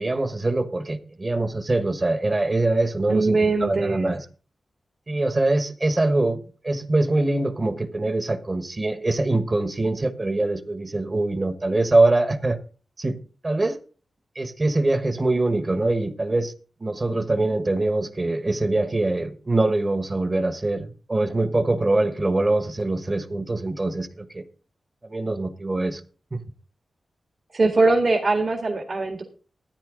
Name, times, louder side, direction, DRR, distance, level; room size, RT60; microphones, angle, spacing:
voice 1, 0.0-4.2 5.1-12.6 13.0-13.2 13.4-13.8 14.3-16.5 16.8-24.4 25.0-26.0 26.3-26.4, right 2 dB, 30° right, 1.2 m, -23 dB
voice 2, 3.1-4.1 27.5-29.2, right 3 dB, 50° right, 1.8 m, -21 dB
13.5 x 9.8 x 3.8 m
wide cardioid pair, 115°, 0 cm